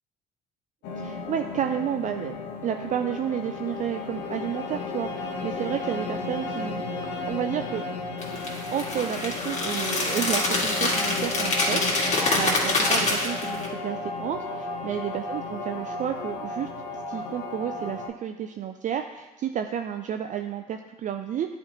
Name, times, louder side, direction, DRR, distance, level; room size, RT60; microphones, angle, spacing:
sound 1, 0.8-18.1, left 3 dB, 65° left, 0.8 m, -33 dB
voice 1, 0.9-2.4 2.6-6.9 7.3-7.8 8.7-16.7 17.1-21.6, right 9 dB, 40° right, 6 dB, 0.4 m, -31 dB
sound 2, 8.2-13.7, left 2 dB, 35° left, 2.0 m, -26 dB
11.0 x 4.3 x 2.9 m, 1.1 s
hypercardioid pair, 50°, 19 cm